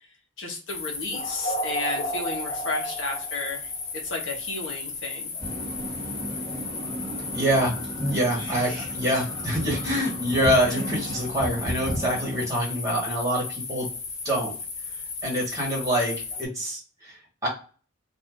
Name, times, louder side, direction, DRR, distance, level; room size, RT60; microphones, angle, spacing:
voice 1, 0.4-3.7 4.0-5.3, left 2 dB, 70° left, 1 dB, 1.0 m, -33 dB
sound 1, 0.7-16.5, left 3 dB, 35° left, 0.6 m, -34 dB
sound 2, 5.4-12.5, equal, 20° left, 1.2 m, -33 dB
voice 2, 7.3-7.7 8.1-13.9 14.2-14.5 15.2-17.5, equal, 15° right, -4 dB, 1.2 m, -26 dB
2.6 x 2.5 x 3.5 m, 0.37 s
head